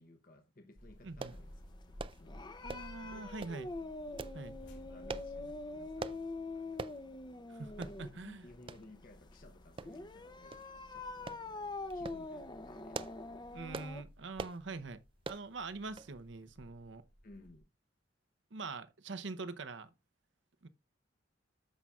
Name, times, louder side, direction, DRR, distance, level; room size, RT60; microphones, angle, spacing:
voice 1, 0.0-1.6 2.0-2.6 3.0-3.3 4.9-6.3 6.5-6.9 8.0-10.6 10.9-13.1 17.2-17.7, left 2 dB, 45° left, 0.9 m, -59 dB
sound 1, 0.8-17.6, equal, 65° left, 4.0 m, -56 dB
voice 2, 1.0-1.3 2.6-3.7 4.3-4.6 7.5-8.5 13.5-15.0 15.3-17.0 18.5-19.9 20.6-20.7, right 3 dB, 70° right, 0.8 m, -44 dB
sound 2, 1.2-14.0, left 3 dB, 25° left, 0.6 m, -45 dB
sound 3, 1.2-1.4 2.0-2.2 2.7-3.0 3.4-3.6 4.2-4.4 5.1-5.3 6.0-6.2 6.8-7.0 7.4-7.5 7.8-8.0 8.7-8.8 9.8-10.2 10.5-10.7 11.3-11.4 11.9-12.2 12.7-13.2 13.7-13.9 14.4-14.6 15.2-15.5 16.0-16.1 16.4-16.5, right 4 dB, 25° right, 0.4 m, -43 dB
13.5 x 5.6 x 2.3 m
head